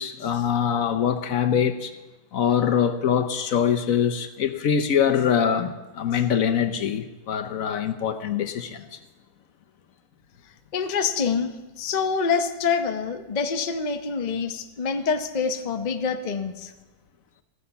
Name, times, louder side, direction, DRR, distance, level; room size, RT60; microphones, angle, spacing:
voice 1, 0.0-1.9 2.3-9.0, left 8 dB, 60° left, 8 dB, 0.9 m, -23 dB
voice 2, 10.7-16.7, left 5 dB, 80° left, 7 dB, 0.3 m, -26 dB
14.5 x 9.9 x 6.8 m, 1.2 s
omnidirectional pair, 2.1 m